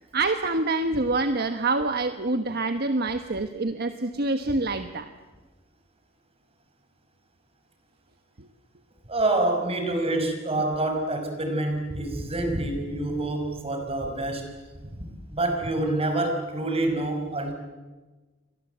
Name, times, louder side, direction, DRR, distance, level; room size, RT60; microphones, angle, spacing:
voice 1, 0.0-5.1 8.4-8.5, right 2 dB, 50° right, 8 dB, 1.3 m, -26 dB
voice 2, 9.1-14.5 14.8-17.5, right 2 dB, 30° right, 5 dB, 5.6 m, -27 dB
29.5 x 24.5 x 8.1 m, 1.3 s
head